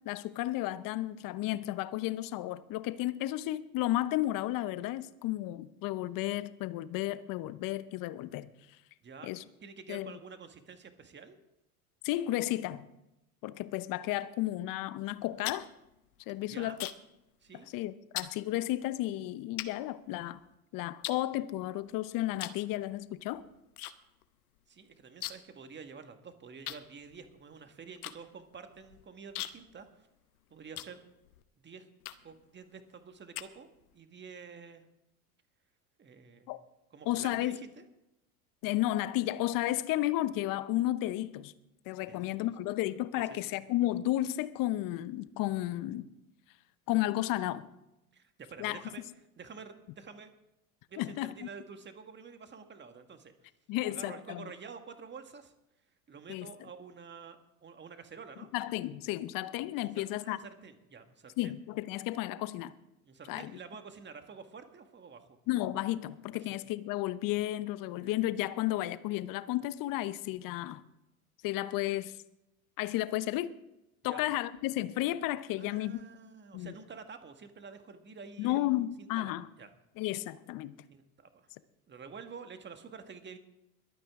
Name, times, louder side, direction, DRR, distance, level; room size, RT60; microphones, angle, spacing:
voice 1, 0.1-8.5 9.2-9.4 9.9-10.1 12.0-12.9 13.4-15.7 16.3-16.9 17.7-20.4 20.7-23.4 36.5-36.6 37.1-37.6 38.6-41.5 41.9-46.1 46.9-47.7 48.6-48.8 51.0-51.3 53.7-54.5 56.3-56.5 58.5-60.4 61.4-62.7 63.3-63.5 65.5-70.8 71.4-72.1 72.8-73.5 74.0-76.0 76.5-76.7 78.4-79.5 80.0-80.7, left 15 dB, 50° left, 15 dB, 0.9 m, -33 dB
voice 2, 9.0-11.4 16.5-16.8 17.4-17.7 24.7-30.1 30.5-31.0 31.6-31.9 32.2-33.7 33.9-34.8 36.0-36.5 36.9-37.9 42.1-42.5 43.3-43.4 48.1-49.0 49.4-50.3 50.9-53.5 53.9-55.5 56.1-58.5 59.8-61.5 63.1-65.4 66.4-66.6 74.1-74.2 75.6-79.7 80.9-81.5 81.9-83.4, right 5 dB, 25° right, 7 dB, 1.8 m, -49 dB
sound 1, 15.1-17.2 17.5-17.8 18.2-18.4 19.0-19.1 19.6-20.5 21.0-21.9 22.3-22.7 23.0-23.9 24.2-24.3 24.6-25.6 25.9-26.0 26.7-31.4 32.0-32.4 32.9-34.0, left 14 dB, 80° left, 1.0 m, -42 dB
22.5 x 9.2 x 3.7 m, 0.89 s
hypercardioid pair, 85°, 44 cm